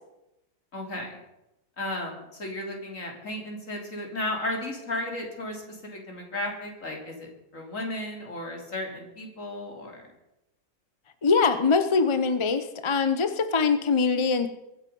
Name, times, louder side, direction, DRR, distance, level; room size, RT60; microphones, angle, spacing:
voice 1, 0.7-1.2 1.8-10.1, left 1 dB, 60° left, 1 dB, 3.6 m, -34 dB
voice 2, 11.2-14.5, left 5 dB, 30° left, 10 dB, 0.6 m, -23 dB
23.0 x 8.0 x 5.4 m, 0.91 s
omnidirectional pair, 1.5 m